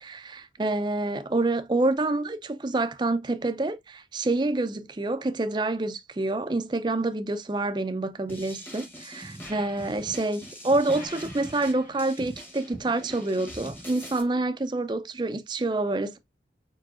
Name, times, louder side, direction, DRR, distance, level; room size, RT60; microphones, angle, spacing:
voice 1, 0.0-16.2, right 2 dB, 25° right, 0.4 m, -27 dB
sound 1, 8.3-14.2, equal, 10° left, 1.0 m, -42 dB
4.7 x 4.6 x 2.4 m
head